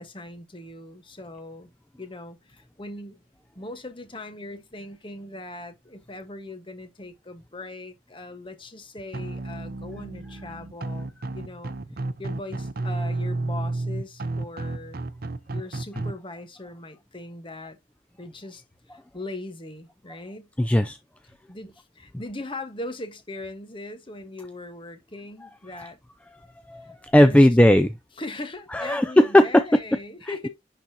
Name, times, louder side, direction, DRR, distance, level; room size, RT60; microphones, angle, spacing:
voice 1, 0.0-1.7 2.0-3.2 3.5-11.7 12.2-15.0 15.5-17.8 18.2-18.6 18.9-20.5 21.5-26.0 27.1-27.5 28.2-30.5, left 2 dB, 25° left, 1.3 m, -39 dB
sound 1, 9.1-16.1, right 2 dB, 50° right, 0.6 m, -31 dB
voice 2, 20.6-21.0 25.7-25.9 26.7-28.0 28.7-29.8, left 1 dB, 5° left, 0.4 m, -17 dB
10.5 x 4.0 x 2.8 m
head